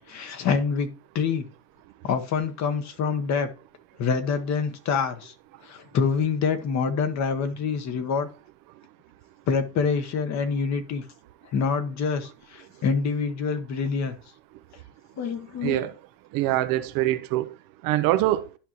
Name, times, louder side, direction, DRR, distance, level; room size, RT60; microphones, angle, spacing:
voice 1, 0.1-1.5 2.0-3.5 4.0-5.3 5.6-8.3 9.5-11.0 11.5-14.1 15.2-15.9, left 5 dB, 35° left, 1.2 m, -26 dB
voice 2, 15.6-15.9 16.3-17.5 17.8-18.5, right 15 dB, 45° right, 0.7 m, -24 dB
11.5 x 5.4 x 3.0 m
supercardioid pair, 135°, 50 cm